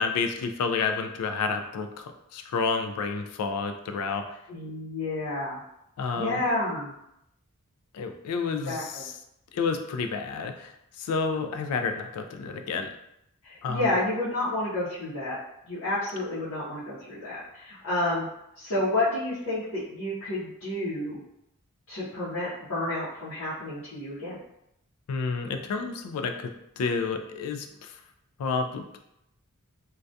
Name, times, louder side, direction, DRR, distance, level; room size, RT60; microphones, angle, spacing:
voice 1, 0.0-4.3 6.0-6.4 7.9-9.1 9.5-10.7 11.0-12.9 13.6-13.9 25.1-27.9 28.4-29.0, left 5 dB, 85° left, 6 dB, 0.3 m, -30 dB
voice 2, 4.5-5.6 6.1-6.9 8.6-9.1 13.4-15.4 15.7-18.3 18.6-21.2 21.9-24.4, left 1 dB, 65° left, -11 dB, 0.8 m, -30 dB
2.3 x 2.2 x 2.6 m, 0.81 s
head